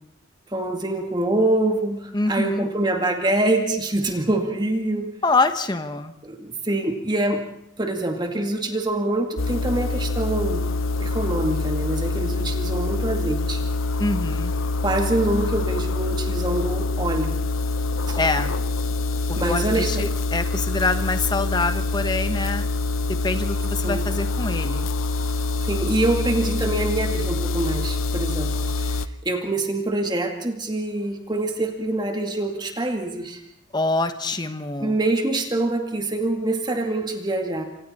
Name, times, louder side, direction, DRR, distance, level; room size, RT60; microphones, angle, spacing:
voice 1, 0.5-5.1 6.2-7.4 7.8-10.7 11.0-13.6 14.8-17.4 18.1-18.2 19.3-20.1 23.8-24.0 25.6-33.4 34.8-37.6, right 2 dB, 20° right, 4 dB, 2.1 m, -25 dB
voice 2, 2.1-2.7 5.2-6.1 14.0-14.5 18.2-18.6 19.3-22.7 23.1-24.9 33.7-34.9, left 3 dB, 20° left, 8 dB, 1.2 m, -25 dB
sound 1, 9.4-29.1, left 3 dB, 90° left, 0.9 m, -25 dB
27.5 x 26.5 x 4.3 m, 0.75 s
head